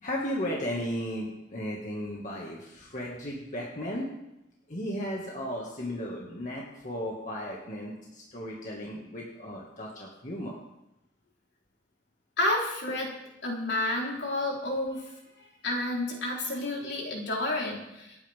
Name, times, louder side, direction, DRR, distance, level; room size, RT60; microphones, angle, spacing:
voice 1, 0.0-4.1 4.7-10.6, equal, 40° left, -3 dB, 2.2 m, -35 dB
voice 2, 12.4-13.1 13.4-15.1 15.4-18.2, left 1 dB, 70° left, -3 dB, 4.2 m, -30 dB
27.0 x 9.6 x 3.7 m, 0.89 s
head